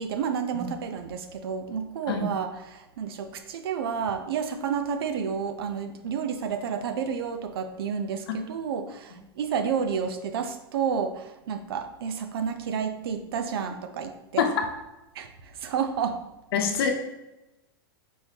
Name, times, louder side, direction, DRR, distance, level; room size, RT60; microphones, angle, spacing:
voice 1, 0.0-14.4 15.2-16.2, right 7 dB, 75° right, 7 dB, 0.5 m, -30 dB
voice 2, 16.5-16.9, left 6 dB, 75° left, 3 dB, 0.8 m, -25 dB
4.5 x 3.4 x 2.7 m, 0.97 s
hypercardioid pair, 115°, 13 cm